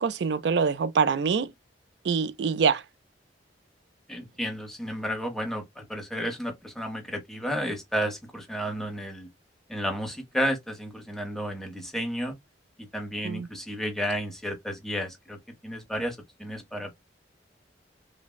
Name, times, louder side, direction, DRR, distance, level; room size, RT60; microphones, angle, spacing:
voice 1, 0.0-1.5 2.0-2.8 13.2-13.5, right 5 dB, 70° right, 0.4 m, -25 dB
voice 2, 4.1-9.3 9.7-12.3 12.8-15.4 15.6-17.0, equal, ahead, 0.7 m, -32 dB
3.3 x 2.0 x 2.2 m
head